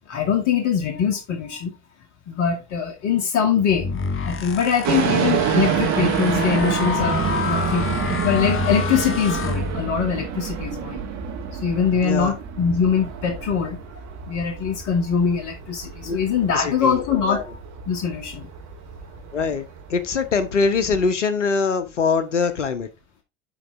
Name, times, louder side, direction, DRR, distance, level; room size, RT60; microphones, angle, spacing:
voice 1, 0.1-1.7 2.3-7.9 8.2-11.0 11.5-13.8 14.3-17.6 17.9-18.5, left 7 dB, 55° left, 2.3 m, -23 dB
sound 1, 3.7-10.2, left 5 dB, 35° left, 1.3 m, -27 dB
sound 2, 4.8-21.1, right 8 dB, 55° right, 2.1 m, -28 dB
voice 2, 12.0-12.3 16.0-16.2 16.5-17.0 17.3-17.5 19.3-22.9, left 4 dB, 85° left, 1.1 m, -23 dB
12.0 x 4.1 x 3.6 m
figure-of-eight pair, 65°, 35 cm